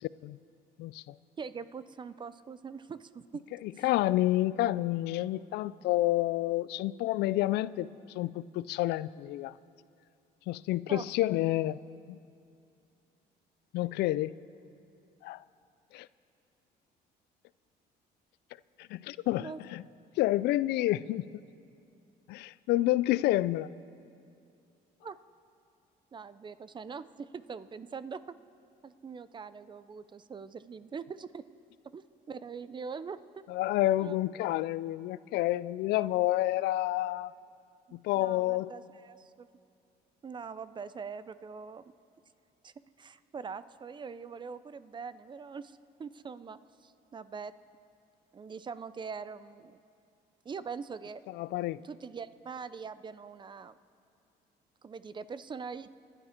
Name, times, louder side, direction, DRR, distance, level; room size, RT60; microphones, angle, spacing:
voice 1, 0.8-1.1 3.6-7.9 8.1-9.5 10.5-11.8 12.1-12.2 13.7-14.3 15.2-15.4 15.9-16.1 18.9-19.8 20.2-21.2 22.3-23.7 33.5-37.3 37.9-38.7 51.3-51.8, left 16 dB, 80° left, 18 dB, 0.4 m, -29 dB
voice 2, 1.4-3.4 3.7-3.9 10.9-11.1 19.4-19.6 25.0-25.2 26.1-28.2 28.8-31.4 31.9-32.0 32.3-33.4 34.0-34.2 37.9-39.5 40.2-41.8 42.6-42.7 43.0-47.5 48.3-49.8 50.4-51.2 51.8-53.7 54.8-55.9, right 5 dB, 25° right, 15 dB, 0.5 m, -42 dB
27.0 x 11.0 x 4.4 m, 2.5 s
cardioid pair, 110°, 17 cm